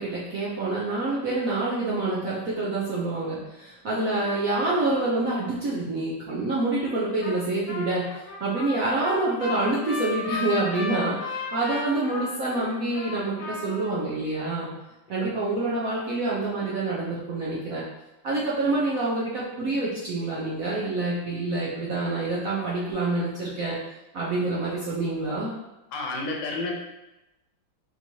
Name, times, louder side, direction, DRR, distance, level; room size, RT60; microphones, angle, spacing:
voice 1, 0.0-8.1 8.4-14.7 15.1-17.8 18.2-23.8 24.1-25.5, right 2 dB, 65° right, -6 dB, 0.9 m, -27 dB
Trumpet, 7.2-7.4 7.7-13.9, left 3 dB, 55° left, 1.4 m, -34 dB
voice 2, 25.9-26.8, left 2 dB, 75° left, -1 dB, 1.4 m, -31 dB
4.4 x 3.0 x 2.6 m, 0.96 s
omnidirectional pair, 2.1 m